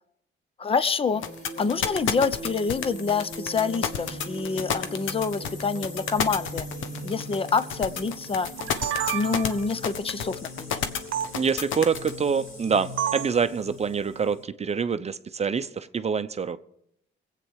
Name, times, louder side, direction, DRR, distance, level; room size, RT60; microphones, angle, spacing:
voice 1, 0.6-1.2 1.6-6.7 7.0-8.5 9.1-10.8, left 5 dB, 30° left, 0.8 m, -27 dB
sound 1, 1.0-14.4, left 1 dB, 45° left, 4.0 m, -40 dB
sound 2, 1.2-12.1, left 8 dB, 80° left, 1.1 m, -29 dB
sound 3, 8.5-9.7 11.1-11.3 13.0-13.4, right 10 dB, 80° right, 0.9 m, -29 dB
voice 2, 11.3-16.6, right 6 dB, 35° right, 0.7 m, -26 dB
23.0 x 8.5 x 4.8 m
cardioid pair, 90°, 20 cm